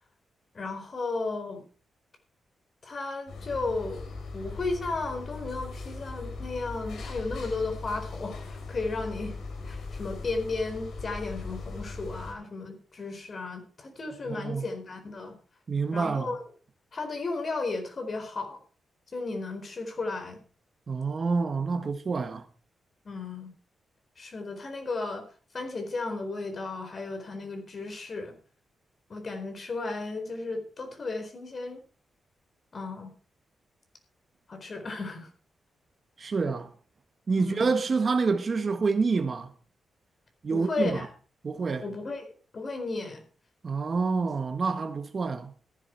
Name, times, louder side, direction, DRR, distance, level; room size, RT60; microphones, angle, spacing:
voice 1, 0.5-1.6 2.8-4.0 4.3-9.4 9.6-15.4 15.9-16.4 16.9-18.6 19.1-20.4 21.7-21.8 23.0-23.5 24.2-25.2 25.5-28.4 29.1-31.8 32.7-33.1 34.5-35.3 37.4-37.7 40.5-41.1 41.8-43.2, left 3 dB, 45° left, 4.3 m, -34 dB
sound 1, 3.3-12.3, left 3 dB, 75° left, 3.9 m, -39 dB
voice 2, 14.3-14.6 15.7-16.3 20.9-22.4 36.2-36.7 37.3-39.5 40.4-41.0 41.4-41.8 43.6-45.5, right 4 dB, 45° right, 1.5 m, -27 dB
14.5 x 11.0 x 4.6 m
cardioid pair, 95°, 0 cm